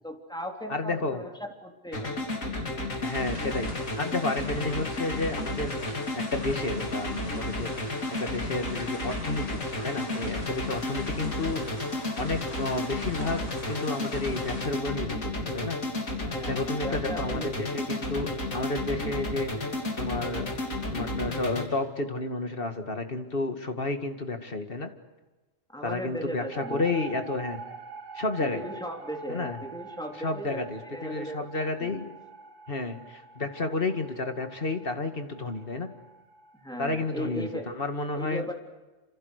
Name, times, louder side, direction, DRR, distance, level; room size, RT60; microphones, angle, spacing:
voice 1, 0.0-2.3 2.6-2.9 16.2-17.5 25.7-26.8 28.4-30.7 30.9-31.5 31.8-32.0 36.5-37.7 38.1-38.5, equal, 5° left, 1 dB, 3.7 m, -37 dB
voice 2, 0.7-1.2 3.0-5.7 6.1-7.7 8.2-11.6 12.2-13.4 13.7-15.2 15.4-15.8 16.5-20.5 20.9-24.9 25.8-27.6 28.1-28.6 29.3-29.6 30.2-32.1 32.7-35.9 36.8-38.5, left 2 dB, 45° left, 6 dB, 2.3 m, -31 dB
sound 1, 1.9-21.7, left 2 dB, 85° left, 3.7 m, -32 dB
sound 2, 3.0-14.7, left 1 dB, 65° left, 5.6 m, -44 dB
sound 3, 26.5-37.7, right 4 dB, 80° right, 4.4 m, -45 dB
28.5 x 27.5 x 6.7 m, 1.2 s
omnidirectional pair, 1.3 m